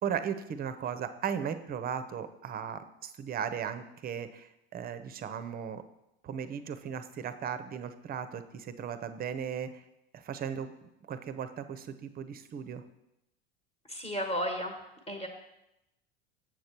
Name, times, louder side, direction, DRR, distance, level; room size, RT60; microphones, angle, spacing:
voice 1, 0.0-5.8 6.2-9.8 10.1-10.7 11.0-12.8, right 8 dB, 30° right, 10 dB, 0.7 m, -36 dB
voice 2, 13.9-14.7 15.1-15.3, equal, 15° left, 3 dB, 1.3 m, -33 dB
7.6 x 6.5 x 4.4 m, 0.87 s
hypercardioid pair, 95°, 31 cm